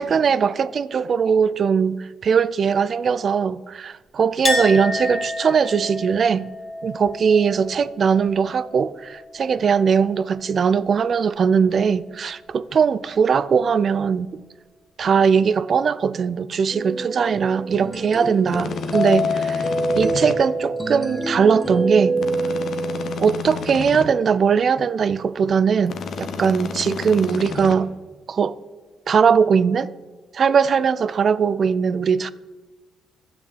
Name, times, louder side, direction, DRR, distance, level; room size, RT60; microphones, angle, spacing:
voice 1, 0.0-6.5 6.8-14.3 15.0-22.2 23.2-27.9 28.3-28.5 29.1-29.9 30.3-32.3, right 6 dB, 50° right, 0.4 m, -20 dB
Chink clink, 4.4-10.0 10.3-11.1, left 2 dB, 20° left, 2.1 m, -31 dB
sound 1, 16.7-23.1, right 1 dB, 5° right, 1.8 m, -25 dB
sound 2, 18.5-20.4 22.2-24.1 25.9-27.8, left 5 dB, 65° left, 1.2 m, -31 dB
11.5 x 6.3 x 8.7 m
cardioid pair, 90°, 0 cm